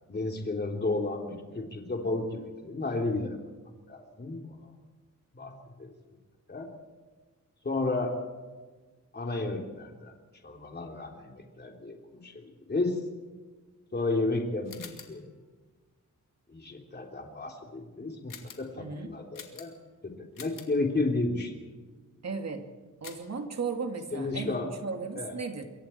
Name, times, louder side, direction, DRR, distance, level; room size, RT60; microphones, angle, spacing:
voice 1, 0.1-3.4 3.9-4.6 5.3-5.5 5.8-5.9 6.5-6.7 7.6-8.2 9.1-10.1 10.4-13.0 13.9-15.3 16.5-19.7 20.0-21.5 24.1-24.7 25.2-25.3, left 2 dB, 30° left, 1 dB, 3.3 m, -32 dB
sound 1, 14.6-15.2 18.3-18.7 19.3-19.9 20.3-20.8 23.0-23.4, left 6 dB, 80° left, 2.6 m, -47 dB
voice 2, 18.8-19.2 22.2-22.7 23.0-25.6, right 4 dB, 55° right, 4 dB, 2.5 m, -35 dB
27.0 x 23.0 x 4.5 m, 1.4 s
wide cardioid pair, 155°, 32 cm